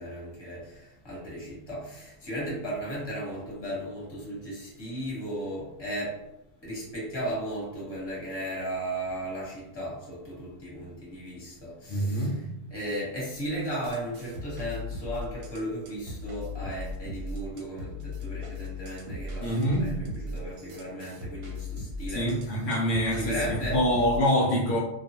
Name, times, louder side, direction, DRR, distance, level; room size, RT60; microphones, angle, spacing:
voice 1, 0.0-6.2 6.6-12.4 12.7-22.7 23.1-23.8, right 1 dB, 20° left, -6 dB, 1.0 m, -35 dB
voice 2, 11.9-12.5 19.4-20.0 22.1-24.8, equal, 70° left, -5 dB, 0.8 m, -26 dB
sound 1, 13.7-24.2, left 2 dB, 85° right, 1.1 m, -38 dB
2.4 x 2.3 x 2.7 m, 0.87 s
omnidirectional pair, 1.5 m